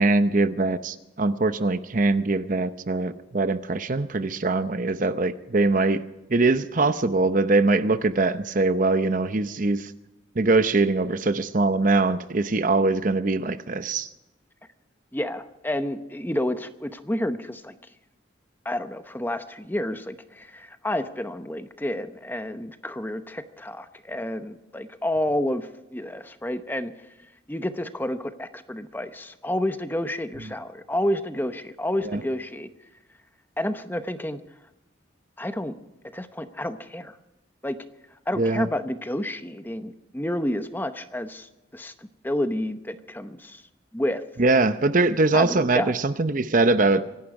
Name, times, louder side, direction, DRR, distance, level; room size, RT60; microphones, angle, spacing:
voice 1, 0.0-6.0 6.3-9.9 10.3-14.1 32.0-32.2 38.4-38.7 44.4-47.0, right 3 dB, 45° right, 11 dB, 0.7 m, -22 dB
voice 2, 15.1-17.7 18.6-26.9 27.5-32.7 33.6-34.4 35.4-35.7 36.1-37.2 37.6-37.8 38.3-41.9 42.2-43.6 43.9-44.2 45.3-45.9, left 1 dB, 10° left, 9 dB, 0.8 m, -30 dB
25.5 x 11.5 x 4.8 m, 0.98 s
head